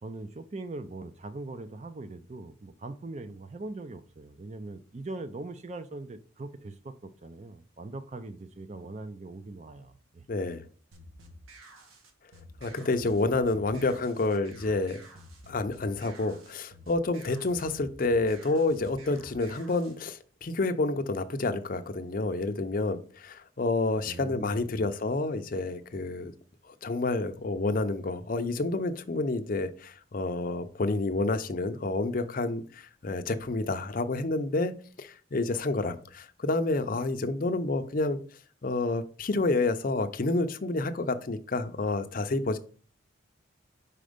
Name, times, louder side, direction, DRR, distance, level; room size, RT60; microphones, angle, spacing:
voice 1, 0.0-10.2 24.0-24.9, right 2 dB, 35° right, 11 dB, 0.4 m, -41 dB
voice 2, 10.3-10.6 12.6-15.0 15.5-26.3 26.7-38.2 38.6-42.6, left 2 dB, 40° left, 9 dB, 0.5 m, -29 dB
sound 1, 10.9-20.0, equal, 90° right, 1.3 m, -51 dB
5.1 x 4.3 x 5.0 m, 0.42 s
head